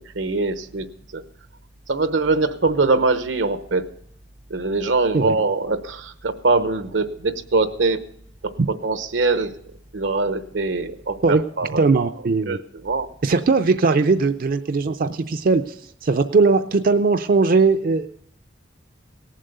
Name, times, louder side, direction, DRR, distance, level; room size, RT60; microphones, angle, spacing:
voice 1, 0.1-1.2 1.9-3.9 4.5-8.1 8.4-9.5 9.9-11.9 12.5-13.1, right 3 dB, 85° right, 10 dB, 0.9 m, -23 dB
voice 2, 11.7-12.6 13.2-15.7 16.0-18.1, right 4 dB, 50° right, 8 dB, 0.5 m, -19 dB
17.5 x 7.5 x 6.7 m, 0.69 s
head